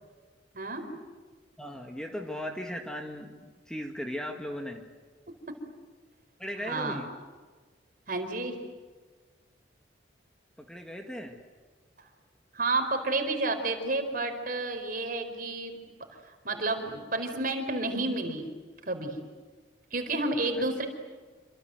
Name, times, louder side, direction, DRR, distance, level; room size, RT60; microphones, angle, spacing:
voice 1, 1.6-4.8 6.4-7.1 10.6-11.4, equal, 5° left, 2 dB, 2.0 m, -37 dB
voice 2, 6.6-7.0 8.1-8.6 12.5-15.8 16.4-18.5 18.9-19.2 19.9-20.9, right 2 dB, 50° right, 6 dB, 4.5 m, -30 dB
28.0 x 25.5 x 8.0 m, 1.4 s
head